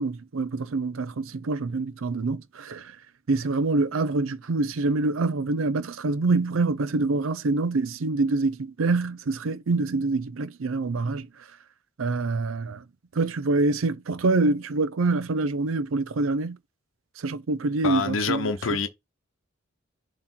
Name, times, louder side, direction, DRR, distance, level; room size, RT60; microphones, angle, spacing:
voice 1, 0.0-2.9 3.3-11.3 12.0-12.8 13.2-16.6 17.2-18.5, right 3 dB, 90° right, 0.6 m, -25 dB
voice 2, 17.8-18.9, left 5 dB, 75° left, 0.8 m, -26 dB
7.3 x 3.1 x 4.3 m
head